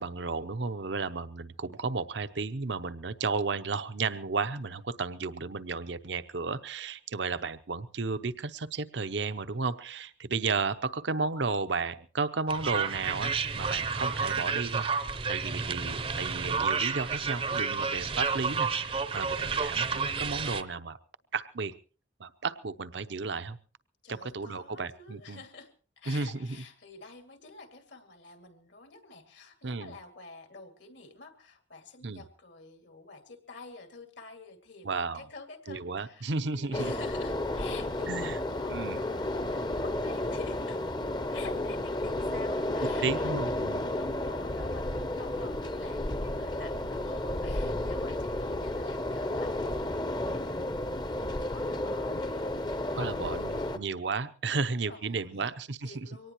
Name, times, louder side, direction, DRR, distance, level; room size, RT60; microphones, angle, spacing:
voice 1, 0.0-14.8 15.3-21.0 21.3-21.7 22.2-23.6 24.1-25.4 26.1-26.3 29.6-30.0 32.0-32.2 34.8-35.3 35.7-36.9 38.1-38.3 38.7-39.0 43.0-43.9 52.9-56.1, right 4 dB, 70° right, 13 dB, 0.8 m, -33 dB
sound 1, 12.5-20.6, right 5 dB, 30° right, 0.7 m, -31 dB
voice 2, 24.0-34.9 35.1-40.8 41.3-53.9 54.5-55.5 55.8-56.3, left 4 dB, 75° left, 5 dB, 2.4 m, -49 dB
sound 2, 36.7-53.8, left 1 dB, 25° left, 0.7 m, -32 dB
23.5 x 18.5 x 3.0 m, 0.38 s
head